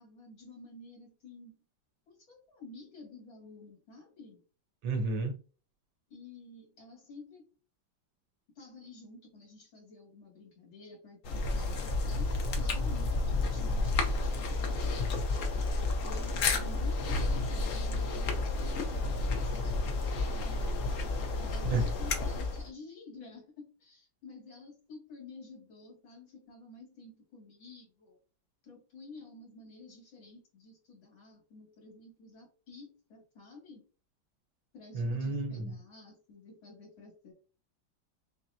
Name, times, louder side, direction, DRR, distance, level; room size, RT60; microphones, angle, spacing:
voice 1, 0.0-1.6 2.1-4.4 6.1-7.5 8.6-15.5 16.0-19.8 20.3-20.7 21.4-28.2 28.6-33.8 34.7-37.3, left 3 dB, 85° left, -2 dB, 2.9 m, -51 dB
voice 2, 4.8-5.4 21.6-21.8 34.9-35.7, right 3 dB, 75° right, 4 dB, 1.7 m, -31 dB
sound 1, 11.2-22.7, left 3 dB, 60° left, 0.9 m, -31 dB
6.1 x 2.1 x 2.7 m, 0.36 s
omnidirectional pair, 2.1 m